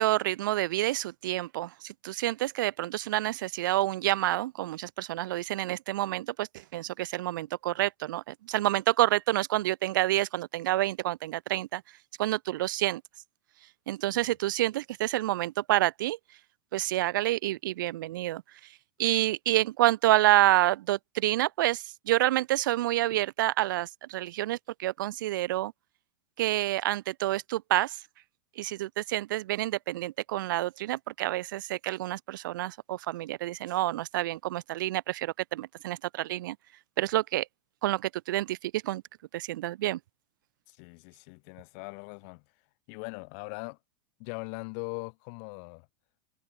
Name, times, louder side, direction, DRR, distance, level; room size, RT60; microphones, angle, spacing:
voice 1, 0.0-11.8 12.2-13.0 13.9-16.2 16.7-18.4 19.0-25.7 26.4-28.0 28.6-36.6 37.0-37.5 37.8-39.0 39.3-40.0, right 15 dB, 70° right, 1.4 m, -28 dB
voice 2, 40.7-42.4 42.9-43.8 44.2-45.9, left 40 dB or more, 50° left, 3.2 m, -40 dB
supercardioid pair, 150°, 11 cm